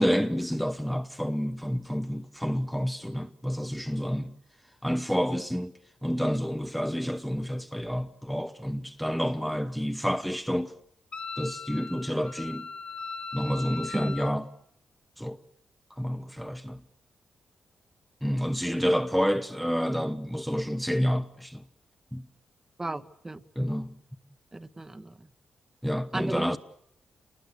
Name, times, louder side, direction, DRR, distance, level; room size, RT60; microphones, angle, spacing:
voice 1, 0.0-4.3 4.8-5.7 6.0-10.7 11.4-12.7 13.3-14.5 15.2-15.4 16.0-16.8 18.2-21.6 22.1-22.2 23.6-24.0 25.8-26.6, equal, ahead, 0.9 m, -29 dB
Wind instrument woodwind instrument, 11.1-14.3, left 4 dB, 55° left, 2.2 m, -39 dB
voice 2, 22.8-23.4 24.5-25.1 26.1-26.5, right 2 dB, 20° right, 1.1 m, -34 dB
28.0 x 20.5 x 8.2 m
cardioid pair, 80°, 2 cm